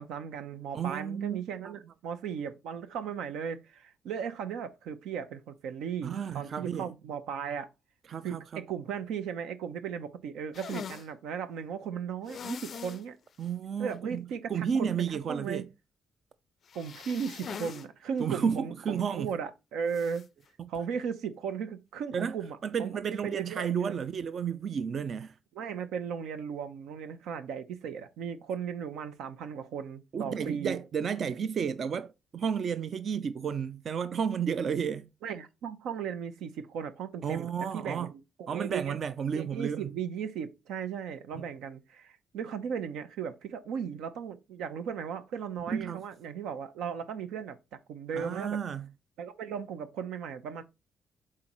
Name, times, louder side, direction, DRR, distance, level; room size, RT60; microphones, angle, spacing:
voice 1, 0.0-7.7 8.2-13.2 13.8-15.6 16.7-20.3 20.7-24.0 25.5-30.8 35.2-39.0 39.3-48.6 49.2-50.6, right 7 dB, 90° right, 0.7 m, -36 dB
voice 2, 0.7-1.4 1.6-1.7 6.0-6.9 8.1-8.6 13.4-15.6 18.2-19.3 22.1-25.3 30.1-35.1 37.2-38.1 38.5-39.9 41.4-41.5 45.7-46.0 48.2-48.9, right 7 dB, 55° right, 0.4 m, -32 dB
sound 1, 10.5-11.1 12.3-13.0 13.4-13.5 13.9-14.0 16.7-17.9 18.2-18.3 19.9-20.2, left 7 dB, 55° left, 0.3 m, -42 dB
7.6 x 4.4 x 3.1 m
cardioid pair, 95°, 0 cm